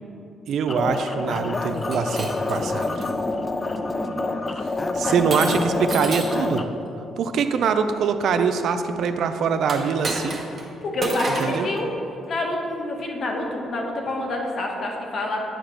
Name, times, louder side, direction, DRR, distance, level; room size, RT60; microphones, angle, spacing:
voice 1, 0.5-3.1 4.9-6.6 7.2-10.4 11.3-11.7, right 6 dB, 70° right, 8 dB, 0.4 m, -23 dB
sound 1, 0.7-6.6, left 2 dB, 30° left, 0.4 m, -27 dB
Shatter, 1.7-3.1 3.8-4.1 5.3-6.5 9.6-10.7 11.0-11.6, right 2 dB, 40° right, 1.2 m, -30 dB
voice 2, 3.8-4.5 4.9-5.5 10.8-11.9 12.3-15.4, left 2 dB, 55° left, 1 dB, 1.1 m, -28 dB
8.7 x 2.9 x 6.2 m, 2.8 s
cardioid pair, 90°, 0 cm